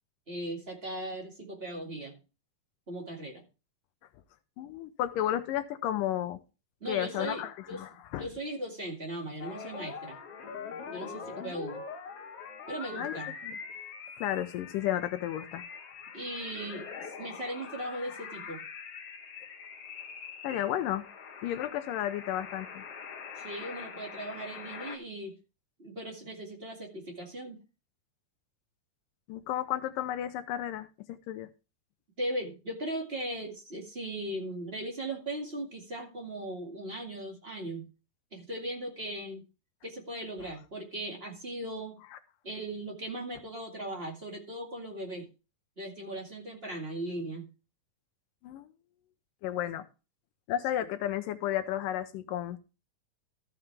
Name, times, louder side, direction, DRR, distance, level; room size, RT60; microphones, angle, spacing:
voice 1, 0.3-2.2 2.9-3.4 6.8-7.8 8.2-10.2 10.9-11.8 12.7-13.3 16.1-18.6 23.4-25.4 25.8-27.6 32.2-37.8 38.3-39.4 39.8-42.0 42.4-45.3 45.8-47.5, right 1 dB, 20° right, 1.8 m, -38 dB
voice 2, 4.6-6.4 6.9-8.3 13.0-13.6 14.2-15.6 20.4-21.0 21.4-22.8 29.3-31.5 48.4-48.7 49.4-49.8 50.5-52.6, left 12 dB, 80° left, 2.3 m, -33 dB
sound 1, 9.4-25.0, left 6 dB, 55° left, 2.0 m, -43 dB
13.5 x 7.6 x 3.4 m
omnidirectional pair, 3.8 m